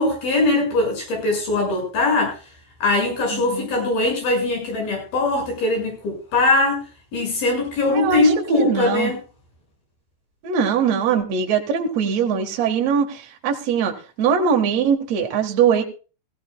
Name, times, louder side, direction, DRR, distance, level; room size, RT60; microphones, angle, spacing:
voice 1, 0.0-2.4 2.8-6.8 7.1-9.2, left 2 dB, 80° left, 1 dB, 7.9 m, -21 dB
voice 2, 3.3-3.7 7.9-8.2 8.5-9.1 10.4-15.8, right 7 dB, 55° right, 2 dB, 2.5 m, -21 dB
17.5 x 16.5 x 2.3 m, 0.35 s
omnidirectional pair, 4.3 m